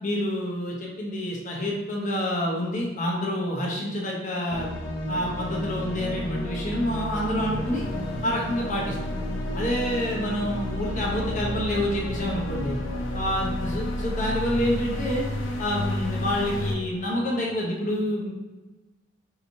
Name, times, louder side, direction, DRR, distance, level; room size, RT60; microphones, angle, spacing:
voice 1, 0.0-4.7 5.1-7.8 8.2-9.0 9.5-12.8 13.1-15.3 15.6-18.3, equal, 40° left, -3 dB, 1.0 m, -28 dB
sound 1, 4.5-16.8, left 1 dB, 85° left, 0.6 m, -31 dB
4.9 x 3.0 x 2.7 m, 1.2 s
head